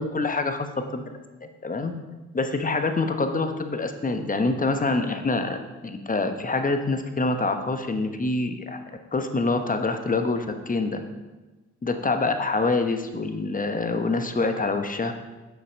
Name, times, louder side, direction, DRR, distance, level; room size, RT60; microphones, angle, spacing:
voice 1, 0.0-1.9 2.3-5.6 5.8-8.8 9.1-11.0 11.8-15.1, left 3 dB, 25° left, 7 dB, 1.1 m, -26 dB
7.8 x 5.7 x 5.4 m, 1.2 s
supercardioid pair, 55°, 31 cm